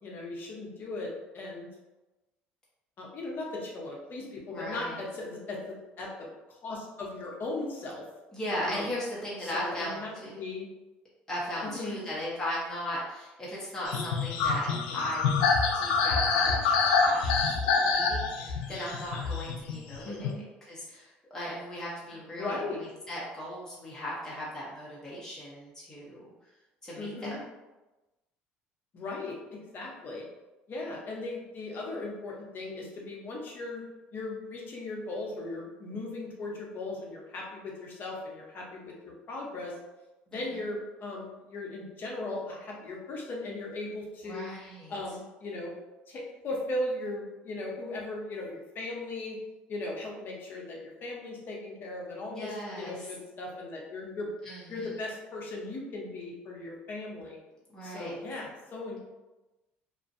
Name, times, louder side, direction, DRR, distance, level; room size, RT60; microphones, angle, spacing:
voice 1, 0.0-1.7 3.0-5.6 6.0-8.1 8.6-8.9 9.4-10.7 11.6-12.0 20.0-20.4 22.3-22.8 27.0-27.4 28.9-30.2 30.7-33.8 34.1-39.8 40.3-44.5 44.9-45.7 46.1-49.4 49.7-54.3 54.7-57.4 57.8-59.0, left 2 dB, 50° left, -1 dB, 0.7 m, -38 dB
voice 2, 4.5-5.0 8.3-10.4 11.3-20.3 20.6-26.3 26.8-27.4 40.3-40.6 44.3-44.9 52.3-53.1 54.4-54.9 57.7-58.2, equal, 10° left, -8 dB, 0.8 m, -38 dB
sound 1, 13.9-20.3, left 4 dB, 90° left, 0.3 m, -26 dB
2.5 x 2.2 x 2.5 m, 1.1 s
supercardioid pair, 85°, 4 cm